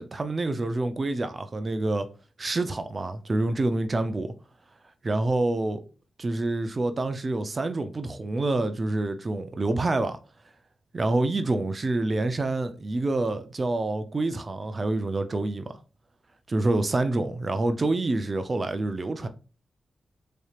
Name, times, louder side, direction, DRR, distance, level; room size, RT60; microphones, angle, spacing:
voice 1, 0.0-2.1 2.4-4.3 5.0-5.8 6.2-10.2 10.9-15.7 16.5-19.3, right 2 dB, 40° right, 0.5 m, -27 dB
4.2 x 3.3 x 2.3 m
cardioid pair, 75°, 0 cm